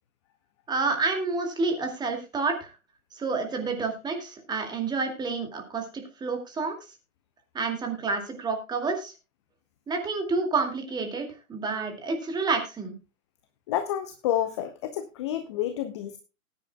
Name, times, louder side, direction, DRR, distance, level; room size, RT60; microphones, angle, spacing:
voice 1, 0.7-2.7 3.1-6.7 7.5-9.1 9.9-12.9, right 4 dB, 10° right, 4 dB, 2.2 m, -29 dB
voice 2, 13.7-16.2, left 11 dB, 20° left, 10 dB, 0.6 m, -29 dB
19.0 x 9.9 x 2.2 m, 0.29 s
figure-of-eight pair, 130°, 43 cm